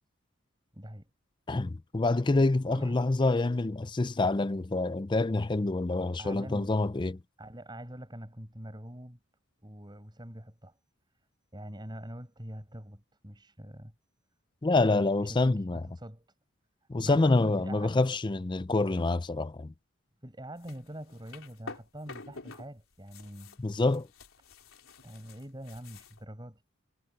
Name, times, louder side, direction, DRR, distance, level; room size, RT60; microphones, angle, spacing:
voice 1, 0.7-1.1 2.7-2.9 6.2-6.7 7.4-9.2 9.6-10.7 11.5-13.9 14.9-16.3 17.0-18.1 20.2-23.6 25.0-26.6, equal, 20° right, 5.4 m, -44 dB
voice 2, 1.5-7.2 14.6-15.8 16.9-19.7 23.6-24.1, left 2 dB, 20° left, 0.4 m, -27 dB
sound 1, 20.6-22.7 22.9-26.2, left 4 dB, 75° left, 3.6 m, -48 dB
head